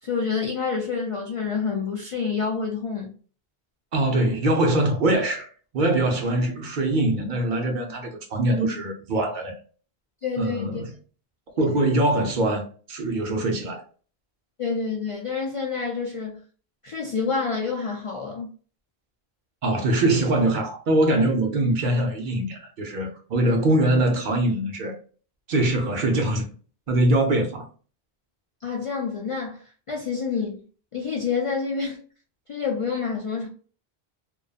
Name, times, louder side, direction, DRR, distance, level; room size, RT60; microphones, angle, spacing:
voice 1, 0.0-3.1 10.2-10.8 11.5-11.8 14.6-16.4 16.8-18.5 28.6-30.6 30.9-32.0 32.5-33.5, left 5 dB, 60° left, 0.3 m, -28 dB
voice 2, 3.9-5.5 5.7-9.5 10.4-10.8 11.6-13.8 19.6-25.0 25.5-26.5 26.9-27.7, right 1 dB, 55° right, 0.7 m, -23 dB
2.5 x 2.2 x 2.3 m
omnidirectional pair, 1.1 m